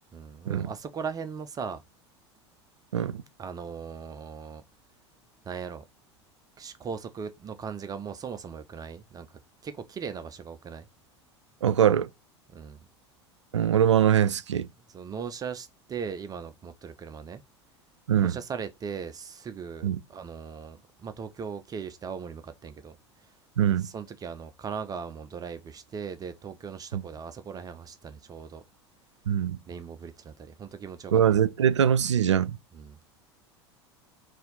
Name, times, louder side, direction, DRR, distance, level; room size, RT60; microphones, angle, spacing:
voice 1, 0.1-1.8 3.4-4.6 5.5-5.8 6.6-9.3 9.6-10.9 12.5-12.8 14.9-17.4 18.2-23.0 23.8-28.6 29.7-31.4 32.7-33.0, right 6 dB, 25° right, 0.5 m, -38 dB
voice 2, 11.6-12.1 13.5-14.7 18.1-18.4 19.8-20.0 23.6-23.9 26.9-27.0 29.3-29.6 31.1-32.6, right 9 dB, 80° right, 0.4 m, -22 dB
4.1 x 2.7 x 3.8 m
figure-of-eight pair, 80°, 15 cm